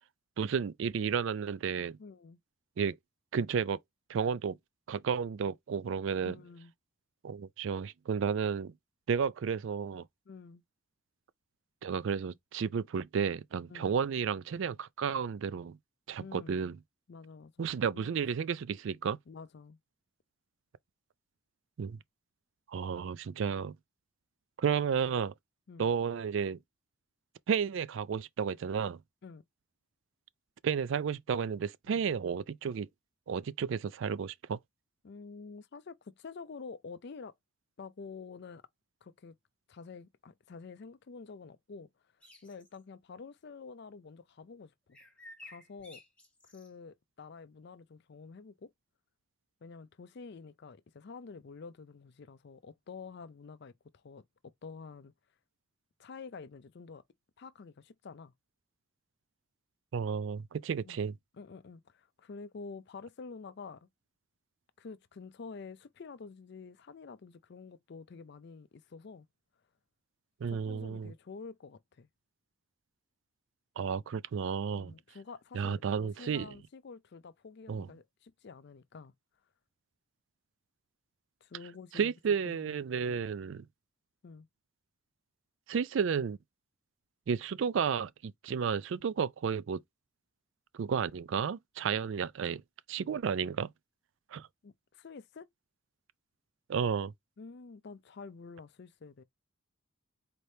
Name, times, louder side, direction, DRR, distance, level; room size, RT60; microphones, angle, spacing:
voice 1, 0.4-2.0 2.8-3.0 3.3-3.8 4.1-4.6 4.9-6.3 7.2-8.7 9.1-10.0 11.8-15.8 16.1-16.8 17.6-19.2 21.8-22.0 22.7-23.8 24.6-25.3 25.8-26.6 27.5-29.0 30.6-32.9 33.3-34.6 59.9-61.1 70.4-71.1 73.8-74.9 75.5-76.5 77.7-77.9 81.9-83.7 85.7-86.4 87.3-89.8 90.7-92.6 92.9-93.7 94.3-94.5 96.7-97.1, right 6 dB, 60° right, 0.3 m, -32 dB
voice 2, 2.0-2.4 6.2-6.7 10.3-10.6 13.7-14.0 16.2-16.7 17.1-18.5 19.3-19.8 25.7-25.9 29.2-29.4 31.9-32.0 35.0-37.3 37.8-38.6 39.0-39.4 39.7-41.9 42.4-45.0 45.4-46.0 46.4-48.7 49.6-55.1 56.0-57.0 57.4-58.3 60.8-61.1 61.3-63.9 64.8-69.3 70.5-72.1 74.7-79.1 81.4-82.1 82.5-83.2 84.2-84.5 94.6-95.5 97.4-99.2, left 4 dB, 50° left, 0.4 m, -48 dB
sound 1, 42.2-42.8 44.9-46.7, left 1 dB, 5° left, 1.2 m, -53 dB
4.3 x 3.3 x 2.7 m
head